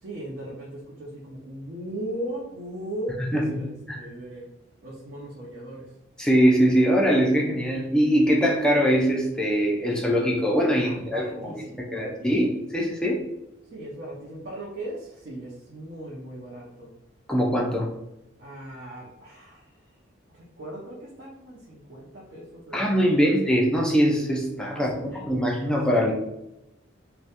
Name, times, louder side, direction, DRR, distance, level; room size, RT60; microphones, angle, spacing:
voice 1, 0.0-4.5 4.8-5.9 10.8-12.6 13.7-16.9 18.4-19.7 20.3-23.1 24.7-26.1, right 1 dB, 55° right, -5 dB, 0.5 m, -38 dB
voice 2, 3.2-3.6 3.9-4.0 6.2-13.2 17.3-17.9 22.7-26.1, equal, 5° left, -2 dB, 0.3 m, -22 dB
2.3 x 2.1 x 2.8 m, 0.89 s
head